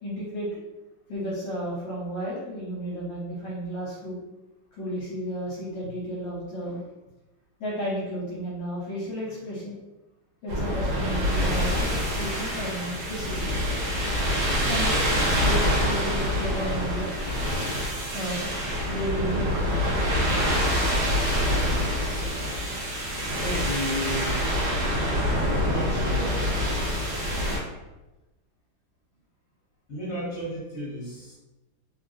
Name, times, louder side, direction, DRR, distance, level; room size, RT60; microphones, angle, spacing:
voice 1, 0.0-0.6 1.1-4.2 4.8-6.8 7.6-9.7 10.4-13.5 14.7-17.1 18.1-18.5 18.9-19.4, equal, 70° left, -7 dB, 1.3 m, -33 dB
sound 1, 10.5-27.6, equal, 60° right, 1.4 m, -26 dB
voice 2, 23.4-24.4 25.6-26.4 29.9-31.4, equal, 45° left, -5 dB, 1.3 m, -33 dB
3.3 x 2.3 x 2.5 m, 1.0 s
omnidirectional pair, 2.3 m